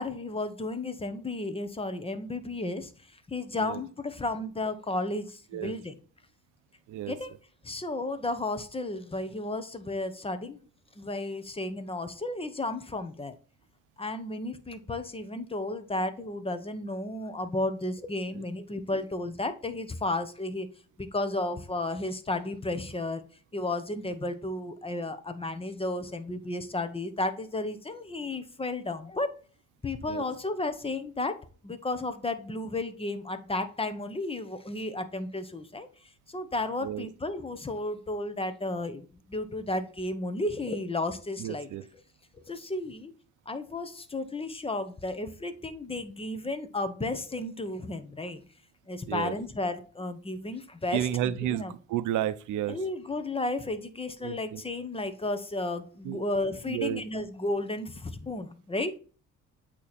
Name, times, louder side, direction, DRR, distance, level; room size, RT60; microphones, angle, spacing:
voice 1, 0.0-2.9 3.3-6.0 7.1-7.3 7.6-10.6 11.0-13.3 14.0-20.7 21.0-23.2 23.5-29.3 29.8-35.9 36.3-41.7 42.3-43.1 43.5-48.4 48.9-51.7 52.7-58.9, left 2 dB, 20° left, 0.8 m, -33 dB
voice 2, 41.4-41.8 49.1-49.3 50.9-52.8 54.2-54.6 56.0-56.2 56.7-57.0, right 11 dB, 80° right, 0.6 m, -32 dB
8.3 x 3.0 x 4.1 m
cardioid pair, 90°, 30 cm